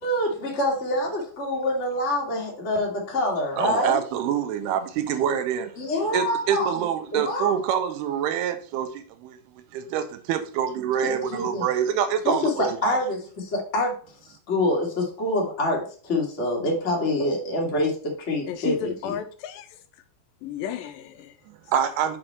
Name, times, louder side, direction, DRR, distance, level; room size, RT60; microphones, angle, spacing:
voice 1, 0.0-4.0 5.8-6.7 7.1-7.6 11.0-11.7 12.2-14.0 14.5-19.1, left 1 dB, 35° left, 1.1 m, -26 dB
voice 2, 3.6-5.7 6.1-9.4 9.7-13.0 21.5-22.2, right 8 dB, 80° right, 2.8 m, -26 dB
voice 3, 18.5-19.8 20.4-21.4, left 10 dB, 75° left, 2.2 m, -33 dB
7.7 x 4.6 x 4.3 m
omnidirectional pair, 4.7 m